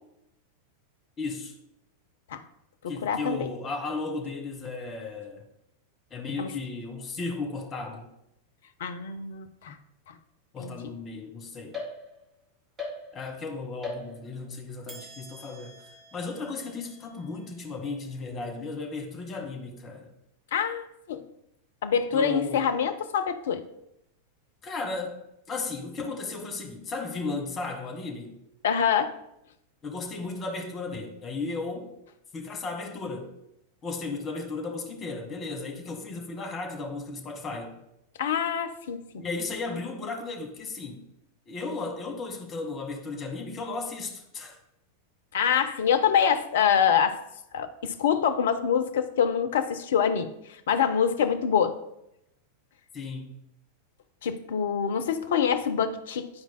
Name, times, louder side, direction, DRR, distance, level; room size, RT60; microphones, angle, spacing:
voice 1, 1.2-1.5 2.9-5.5 6.1-8.1 10.5-11.8 13.1-20.1 22.1-22.6 24.6-28.4 29.8-31.9 32.3-33.3 33.8-37.7 39.2-41.0 41.5-44.6 52.9-53.4, left 3 dB, 25° left, 2 dB, 1.5 m, -35 dB
voice 2, 2.8-3.4 6.4-6.5 8.8-9.8 10.1-10.2 10.6-10.8 20.5-21.2 21.8-23.6 28.6-29.1 38.2-39.2 45.3-47.2 47.5-51.8 54.2-56.3, left 7 dB, 60° left, 10 dB, 0.6 m, -25 dB
sound 1, 11.7-12.4 12.8-13.4 13.8-14.5 14.9-18.3, left 3 dB, 20° right, 1.8 m, -43 dB
11.5 x 4.6 x 2.2 m, 0.82 s
figure-of-eight pair, 90°, 0 cm